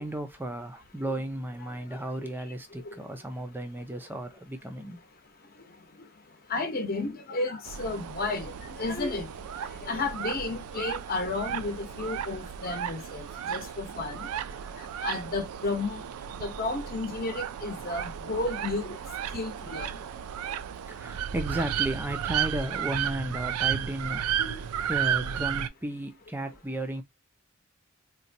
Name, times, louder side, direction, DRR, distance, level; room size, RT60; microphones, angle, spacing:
voice 1, 0.0-5.0 14.6-14.8 20.1-20.3 20.9-24.6 24.9-27.0, right 1 dB, 10° right, 0.5 m, -34 dB
voice 2, 6.5-9.3 9.8-14.3 15.0-16.0 16.4-18.9 19.3-19.9 24.4-24.6, left 3 dB, 40° left, 0.8 m, -32 dB
sound 1, 7.6-25.7, right 9 dB, 85° right, 0.3 m, -33 dB
4.1 x 2.1 x 2.6 m
head